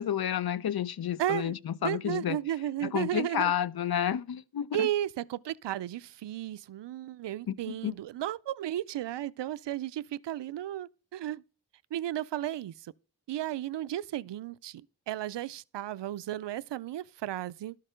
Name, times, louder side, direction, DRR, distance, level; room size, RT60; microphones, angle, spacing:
voice 1, 0.0-2.4 2.8-4.9 7.5-7.9, left 10 dB, 65° left, 0.6 m, -30 dB
voice 2, 1.2-1.6 1.8-3.5 4.7-11.4 11.9-12.9 13.3-14.8 15.1-17.8, right 12 dB, 85° right, 0.5 m, -34 dB
12.5 x 6.5 x 5.0 m
wide cardioid pair, 105°, 41 cm